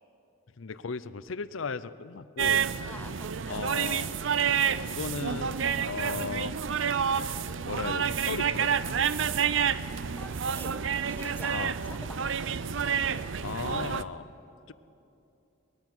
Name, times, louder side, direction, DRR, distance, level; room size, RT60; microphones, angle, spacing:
voice 1, 0.6-2.7 3.5-4.1 4.9-6.6 7.6-8.7 11.5-11.7 13.4-14.3 14.7-14.8, left 4 dB, 75° left, 15 dB, 0.6 m, -36 dB
sound 1, 2.4-14.0, right 7 dB, 70° right, 0.5 m, -29 dB
voice 2, 2.8-4.0 10.2-10.8 11.1-12.3, left 2 dB, 10° left, 11 dB, 0.5 m, -46 dB
23.5 x 20.5 x 6.2 m, 2.8 s
head